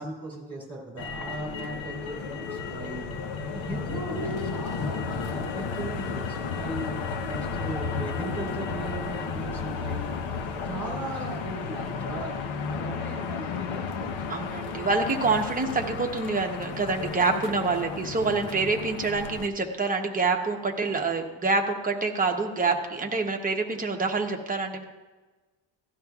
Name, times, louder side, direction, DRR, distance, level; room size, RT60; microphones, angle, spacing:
voice 1, 0.0-3.3 3.5-6.9 7.3-10.1 10.6-12.4 12.7-14.4, right 2 dB, 5° left, -5 dB, 3.4 m, -38 dB
Motor vehicle (road), 1.0-19.5, left 5 dB, 80° left, 0.9 m, -33 dB
voice 2, 14.3-24.8, right 3 dB, 20° right, 2 dB, 0.8 m, -26 dB
17.0 x 12.0 x 2.3 m, 1.3 s
cardioid pair, 180°, 46 cm